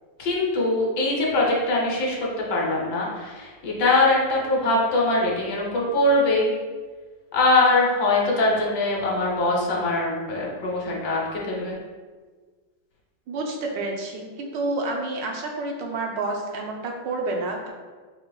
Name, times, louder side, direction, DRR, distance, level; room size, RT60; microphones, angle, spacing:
voice 1, 0.2-2.2 2.5-6.5 7.3-11.8, left 2 dB, 65° left, -3 dB, 1.3 m, -22 dB
voice 2, 13.3-17.7, right 2 dB, 75° right, 1 dB, 1.2 m, -29 dB
4.7 x 3.2 x 2.2 m, 1.4 s
omnidirectional pair, 2.1 m